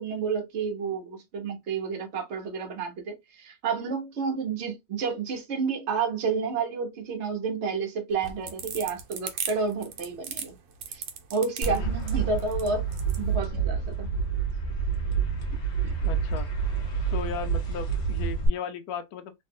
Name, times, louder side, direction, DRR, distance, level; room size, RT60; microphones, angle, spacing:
voice 1, 0.0-10.6 10.9-11.0 11.3-12.9 13.2-14.1 15.8-15.9, right 5 dB, 50° right, 0.9 m, -30 dB
sound 1, 8.1-13.2, right 7 dB, 85° right, 1.4 m, -36 dB
sound 2, 11.6-18.5, right 6 dB, 45° left, 1.1 m, -28 dB
voice 2, 16.0-16.5 17.1-19.3, left 7 dB, 70° left, 0.9 m, -36 dB
3.1 x 2.7 x 2.6 m
omnidirectional pair, 2.0 m